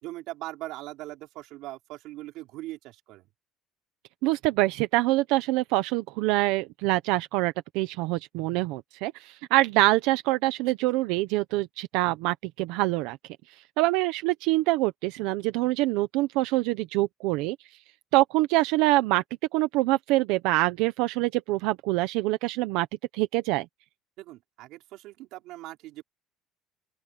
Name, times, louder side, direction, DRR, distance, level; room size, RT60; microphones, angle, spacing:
voice 1, 0.0-3.3 24.2-26.0, right 17 dB, 65° right, 4.8 m, -40 dB
voice 2, 4.2-13.2 13.8-17.6 18.1-19.2 19.5-22.9 23.1-23.7, right 18 dB, 80° right, 0.9 m, -25 dB
open air
cardioid pair, 160°, 0 cm